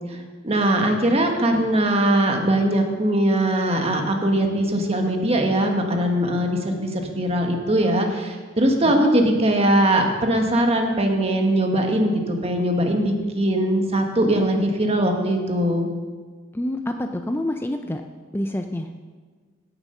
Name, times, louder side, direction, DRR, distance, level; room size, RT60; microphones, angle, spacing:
voice 1, 0.1-15.9, right 1 dB, 30° right, 3 dB, 1.4 m, -21 dB
voice 2, 16.5-18.0 18.3-18.9, left 1 dB, 10° left, 5 dB, 0.4 m, -27 dB
16.5 x 7.1 x 5.6 m, 1.5 s
head